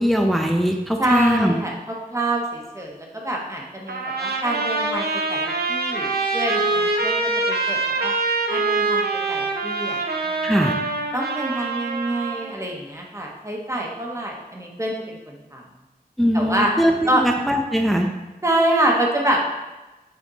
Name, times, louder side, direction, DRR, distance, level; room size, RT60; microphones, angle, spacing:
voice 1, 0.0-1.6 10.4-10.8 16.2-18.1, equal, ahead, 3 dB, 0.6 m, -20 dB
voice 2, 1.0-6.1 6.3-7.2 7.5-8.1 8.5-10.0 10.2-10.5 11.1-15.6 16.3-16.7 17.1-17.2 18.4-19.4, right 1 dB, 20° right, -1 dB, 1.3 m, -26 dB
Trumpet, 3.9-12.5, right 3 dB, 75° right, 0.8 m, -24 dB
7.1 x 4.3 x 4.1 m, 1.1 s
wide cardioid pair, 75°, 16 cm